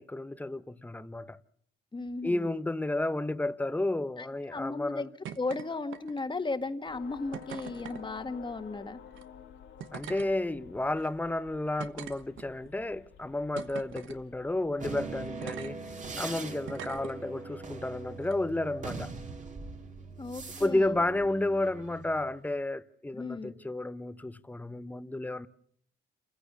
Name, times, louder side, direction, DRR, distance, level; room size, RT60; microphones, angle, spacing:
voice 1, 0.0-1.4 2.2-5.1 9.9-15.8 16.2-19.1 20.6-25.5, left 2 dB, 10° left, 0.8 m, -32 dB
voice 2, 1.9-2.5 4.2-5.1 5.4-9.0 20.2-21.0 23.1-23.5, left 3 dB, 25° left, 1.7 m, -35 dB
sound 1, 5.2-5.6 5.9-6.4 7.3-8.0 9.1-9.2 9.8-10.3 11.0-11.1 11.8-12.7 13.6-14.2 15.4-15.7 16.7-17.1 18.2-18.3, right 10 dB, 75° right, 1.3 m, -42 dB
sound 2, 6.9-16.3, left 8 dB, 75° left, 2.3 m, -52 dB
sound 3, 14.8-22.3, right 4 dB, 40° right, 2.5 m, -42 dB
28.0 x 15.5 x 6.9 m
cardioid pair, 90°, 20 cm